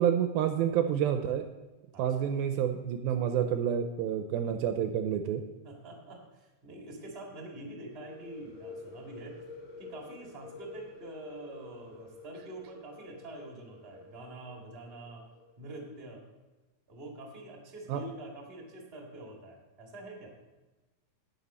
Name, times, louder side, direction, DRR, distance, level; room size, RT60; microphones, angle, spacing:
voice 1, 0.0-1.5 2.0-5.4 17.9-18.0, right 9 dB, 85° right, 7 dB, 2.2 m, -28 dB
voice 2, 1.9-2.3 5.6-9.4 9.8-15.2 15.6-16.2 16.9-20.4, right 2 dB, 45° right, -1 dB, 0.8 m, -46 dB
sound 1, 7.9-15.5, left 3 dB, 50° left, 4.1 m, -49 dB
11.0 x 9.3 x 4.2 m, 1.2 s
omnidirectional pair, 4.7 m